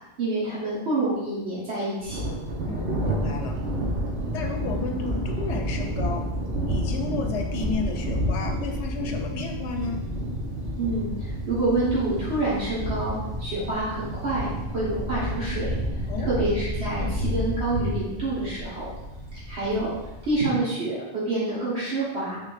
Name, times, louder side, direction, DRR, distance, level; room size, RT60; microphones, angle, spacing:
voice 1, 0.2-2.3 10.8-15.8 16.3-18.9 19.3-19.9 20.2-22.4, right 2 dB, 70° right, -9 dB, 1.6 m, -27 dB
Thunder, 2.0-20.4, equal, 90° right, 1.3 m, -30 dB
voice 2, 2.7-3.6 4.3-6.2 6.7-10.0 16.1-16.5, left 4 dB, 90° left, 3 dB, 1.0 m, -32 dB
5.0 x 3.7 x 2.5 m, 0.95 s
omnidirectional pair, 1.1 m